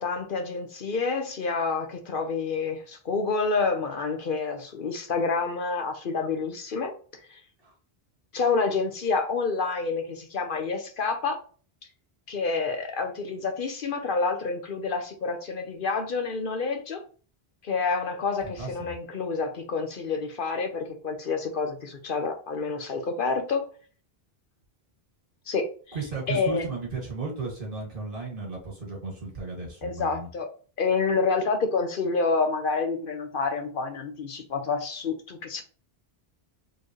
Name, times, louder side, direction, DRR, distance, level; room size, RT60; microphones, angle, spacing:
voice 1, 0.0-6.9 7.3-7.4 8.3-11.4 12.3-17.0 17.6-23.7 25.5-26.0 26.3-26.6 29.8-30.5 30.8-35.6, left 4 dB, 60° left, 0.9 m, -28 dB
voice 2, 18.4-18.9 25.9-30.3, right 3 dB, 60° right, 2.1 m, -34 dB
4.5 x 3.1 x 3.0 m
omnidirectional pair, 1.0 m